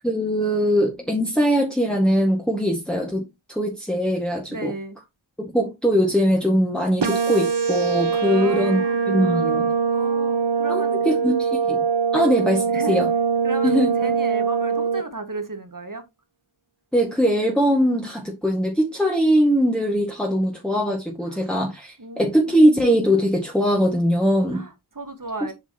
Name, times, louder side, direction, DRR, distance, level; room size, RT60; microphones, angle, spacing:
voice 1, 0.0-4.7 5.4-9.7 10.7-10.8 11.2-11.8 12.1-12.6 12.9-13.1 13.6-13.9 16.9-24.6, equal, ahead, 1.8 m, -21 dB
voice 2, 4.5-5.0 8.2-9.4 9.9-11.2 12.1-12.3 12.7-13.0 13.4-16.1 21.2-21.5 22.0-22.6 24.5-25.5, right 2 dB, 40° right, 1.7 m, -35 dB
sound 1, 7.0-15.0, right 6 dB, 60° right, 1.2 m, -22 dB
7.5 x 6.1 x 2.9 m
wide cardioid pair, 60°, 48 cm